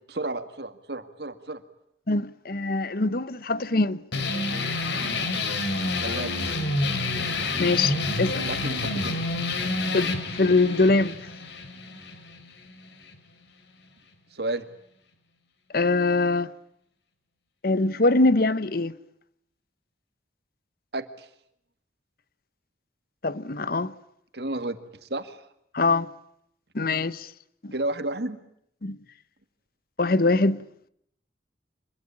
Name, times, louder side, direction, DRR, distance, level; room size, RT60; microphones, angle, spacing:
voice 1, 0.1-1.6 6.0-6.4 8.4-9.2 14.3-14.7 20.9-21.3 24.3-25.4 27.7-28.4, right 2 dB, 60° right, 2.0 m, -32 dB
voice 2, 2.1-4.0 7.6-8.5 9.9-11.2 15.7-16.5 17.6-19.0 23.2-23.9 25.7-26.1 26.7-27.3 27.6-27.7 28.8-29.0 30.0-30.7, left 3 dB, 55° left, 1.0 m, -23 dB
sound 1, 4.1-13.2, left 2 dB, 80° left, 3.5 m, -28 dB
26.5 x 22.0 x 8.7 m
head